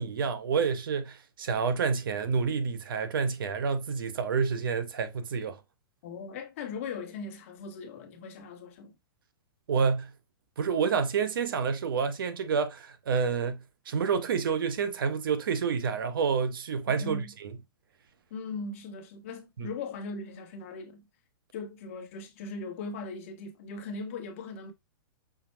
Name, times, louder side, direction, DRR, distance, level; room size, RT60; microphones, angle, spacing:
voice 1, 0.0-5.6 9.7-10.2 10.6-17.5 19.6-19.7, right 5 dB, 70° right, 0.8 m, -29 dB
voice 2, 6.0-8.9 16.9-17.3 18.3-21.1 21.5-24.7, left 4 dB, 35° left, 1.0 m, -39 dB
5.7 x 2.0 x 4.4 m
hypercardioid pair, 180°, 12 cm